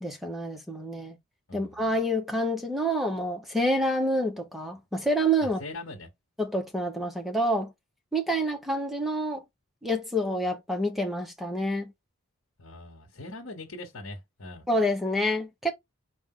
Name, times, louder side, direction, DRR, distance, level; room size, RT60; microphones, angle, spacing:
voice 1, 0.0-1.2 1.5-5.6 6.4-7.7 8.1-9.4 9.8-11.9 14.7-15.7, equal, ahead, 1.0 m, -27 dB
voice 2, 1.5-1.8 5.4-6.1 12.6-14.6, left 2 dB, 65° left, 1.3 m, -41 dB
4.6 x 2.6 x 3.8 m
head